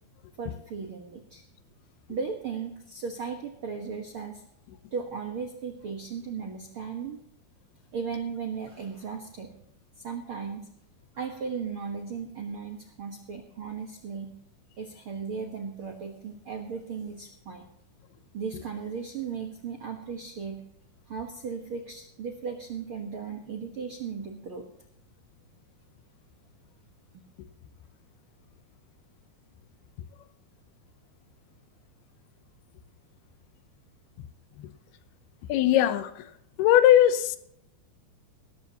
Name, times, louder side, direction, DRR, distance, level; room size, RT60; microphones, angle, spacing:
voice 1, 0.4-1.4 2.1-4.4 4.9-7.2 7.9-9.5 10.0-10.7 11.1-14.3 14.8-17.7 18.3-20.6 21.1-24.7, right 6 dB, 80° right, 1.2 m, -36 dB
voice 2, 35.5-36.3 36.6-37.4, left 12 dB, 80° left, 2.7 m, -20 dB
18.0 x 14.0 x 2.9 m
omnidirectional pair, 4.5 m